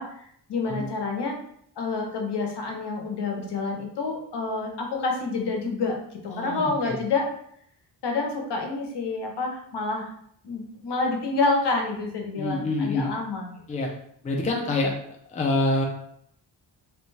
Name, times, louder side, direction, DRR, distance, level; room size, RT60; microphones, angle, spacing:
voice 1, 0.0-1.4 1.8-6.0 6.2-7.3 8.0-10.1 10.4-13.6, left 3 dB, 70° left, 2 dB, 0.7 m, -28 dB
voice 2, 6.3-7.0 12.4-13.1 13.7-13.9 14.2-15.8, left 2 dB, 20° left, 0 dB, 0.3 m, -26 dB
2.6 x 2.2 x 3.1 m, 0.68 s
wide cardioid pair, 135°, 43 cm